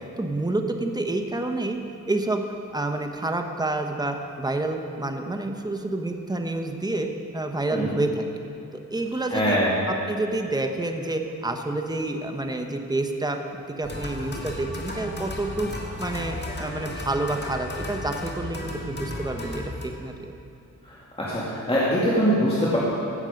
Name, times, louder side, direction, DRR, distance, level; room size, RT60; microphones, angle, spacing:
voice 1, 0.2-1.8 2.1-2.4 2.7-8.2 8.7-9.6 9.9-15.7 16.0-20.3, right 2 dB, 15° right, 4 dB, 1.0 m, -28 dB
voice 2, 9.3-9.7 20.8-22.8, equal, 20° left, -8 dB, 2.3 m, -23 dB
sound 1, 13.8-19.9, left 1 dB, 35° left, 1.8 m, -34 dB
16.0 x 7.3 x 5.2 m, 2.8 s
cardioid pair, 85°, 31 cm